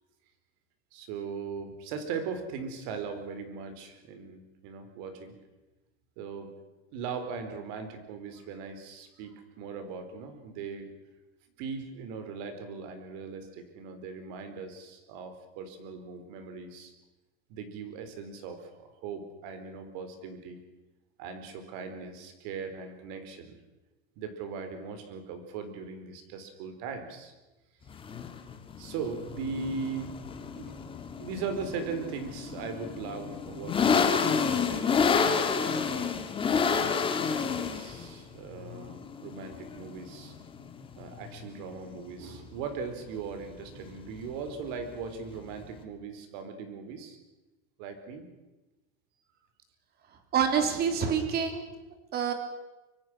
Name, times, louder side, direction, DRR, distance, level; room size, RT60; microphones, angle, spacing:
voice 1, 0.9-5.4 6.2-6.5 6.9-10.9 11.6-16.9 17.5-20.6 21.2-23.6 24.2-27.3 28.8-30.2 30.5-30.8 31.2-35.0 35.5-36.2 37.3-40.3 41.0-47.2 47.8-48.3, right 5 dB, 50° right, 8 dB, 4.3 m, -39 dB
sound 1, 27.9-45.8, left 6 dB, 15° left, 1.9 m, -30 dB
voice 2, 50.3-51.7 52.1-52.3, right 7 dB, 30° right, 7 dB, 3.5 m, -26 dB
24.5 x 24.5 x 6.3 m, 1.1 s
supercardioid pair, 160°, 34 cm